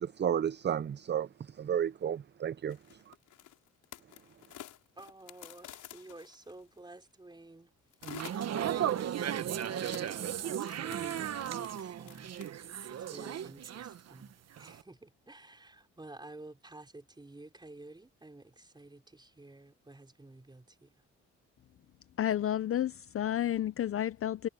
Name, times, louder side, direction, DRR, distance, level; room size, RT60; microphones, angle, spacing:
voice 1, 0.0-3.1, right 9 dB, 35° right, 0.6 m, -33 dB
sound 1, 2.7-6.8 7.9-8.9 9.6-12.5, left 12 dB, 80° left, 5.8 m, -50 dB
voice 2, 5.0-7.7 8.5-21.0, right 2 dB, 15° right, 5.0 m, -52 dB
sound 2, 8.0-14.3 14.6-14.8, right 10 dB, 55° right, 1.2 m, -35 dB
voice 3, 22.2-24.5, left 11 dB, 45° left, 0.6 m, -31 dB
cardioid pair, 90°, 30 cm